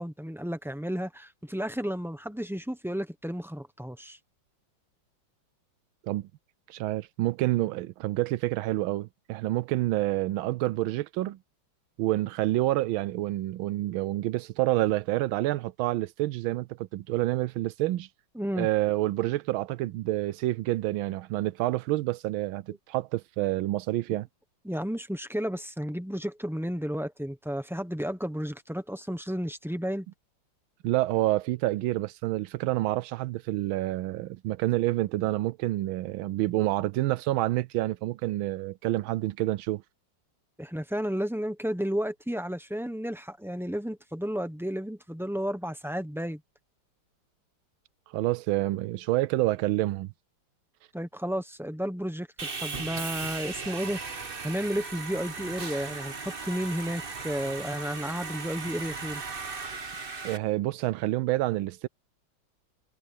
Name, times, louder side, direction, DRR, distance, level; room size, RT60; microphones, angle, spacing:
voice 1, 0.0-4.2 18.4-18.7 24.1-24.2 24.6-30.1 40.6-46.4 50.9-59.2, equal, 5° right, 0.3 m, -32 dB
voice 2, 6.7-11.4 12.0-18.1 18.6-24.3 30.8-39.8 48.1-50.1 60.2-61.9, right 17 dB, 85° right, 1.4 m, -28 dB
Sawing, 52.4-60.4, right 4 dB, 30° right, 1.4 m, -37 dB
omnidirectional pair, 2.2 m